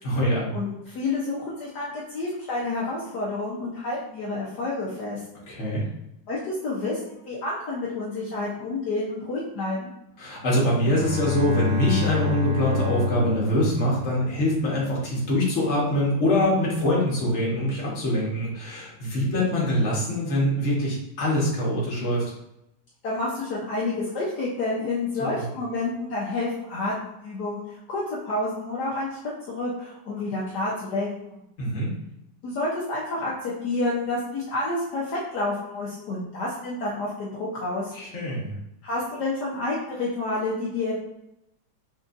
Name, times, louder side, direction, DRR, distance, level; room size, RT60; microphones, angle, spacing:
voice 1, 0.0-0.5 5.5-5.8 10.2-22.2 25.4-25.5 31.6-31.9 37.9-38.5, left 1 dB, 40° left, -5 dB, 1.5 m, -24 dB
voice 2, 0.5-5.2 6.3-9.9 23.0-29.1 29.5-31.4 32.4-37.9 38.8-41.0, left 2 dB, 65° left, -6 dB, 1.4 m, -29 dB
Bowed string instrument, 10.8-14.6, left 4 dB, 50° right, 0.9 m, -29 dB
5.3 x 3.5 x 2.6 m, 0.84 s
omnidirectional pair, 2.0 m